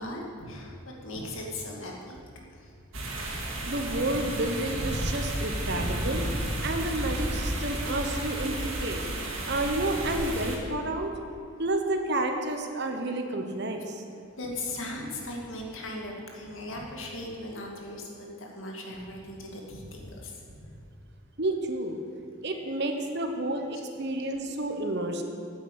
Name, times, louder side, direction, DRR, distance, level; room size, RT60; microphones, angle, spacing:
voice 1, 0.0-2.2 2.5-3.5 14.4-20.7 22.5-22.6 24.2-24.3, left 1 dB, 65° left, -1 dB, 2.2 m, -39 dB
sound 1, 2.9-10.6, right 1 dB, 70° right, 2.5 m, -32 dB
voice 2, 3.7-6.2 6.6-11.1 11.6-14.0 21.4-22.0 22.4-25.2, right 1 dB, 50° right, 4 dB, 1.2 m, -30 dB
9.1 x 9.0 x 8.4 m, 2.7 s
head